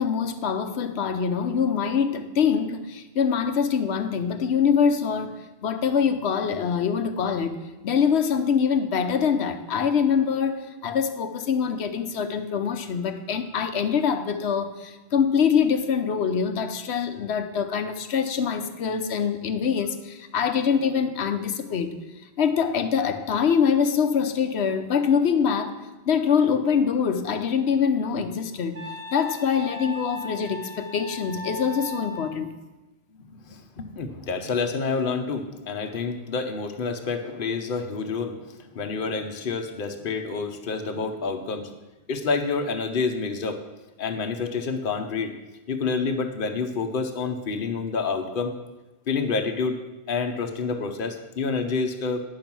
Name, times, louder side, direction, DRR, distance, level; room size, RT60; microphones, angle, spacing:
voice 1, 0.0-7.6 7.8-21.9 22.4-25.8 26.1-28.8 29.1-32.5, left 7 dB, 85° left, 9 dB, 1.1 m, -24 dB
Wind instrument woodwind instrument, 28.7-32.4, left 2 dB, 70° right, 1.5 m, -37 dB
voice 2, 33.1-41.7 42.1-43.6 44.0-45.3 45.7-48.6 49.1-49.8 50.1-52.2, left 4 dB, 55° left, 5 dB, 1.1 m, -28 dB
9.7 x 7.2 x 6.0 m, 1.1 s
omnidirectional pair, 1.1 m